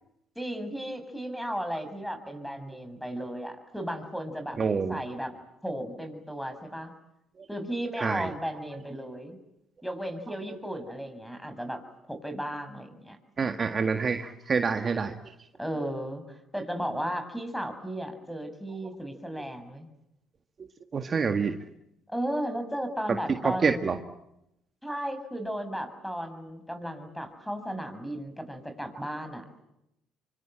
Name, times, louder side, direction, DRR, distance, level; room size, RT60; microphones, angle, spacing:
voice 1, 0.3-4.6 4.9-5.3 5.6-6.9 7.5-9.4 9.8-11.8 12.1-13.2 15.6-19.9 22.1-24.0 24.8-29.4, equal, ahead, 8 dB, 6.6 m, -35 dB
voice 2, 4.6-5.0 8.0-8.3 13.4-15.1 20.9-21.5 23.4-24.0, right 5 dB, 35° right, 6 dB, 1.9 m, -27 dB
26.5 x 24.5 x 9.0 m, 0.83 s
supercardioid pair, 80°, 0 cm